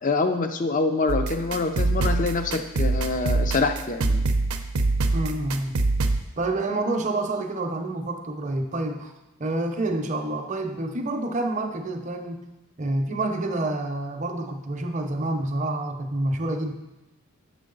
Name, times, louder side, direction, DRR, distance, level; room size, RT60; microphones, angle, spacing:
voice 1, 0.0-4.2, left 3 dB, 35° left, 7 dB, 0.5 m, -25 dB
sound 1, 1.1-6.2, right 2 dB, 85° right, 0.7 m, -24 dB
voice 2, 5.1-5.8 6.4-9.1 9.4-12.5 12.8-16.7, right 2 dB, 35° right, 4 dB, 0.7 m, -28 dB
8.4 x 6.3 x 3.9 m, 1.0 s
head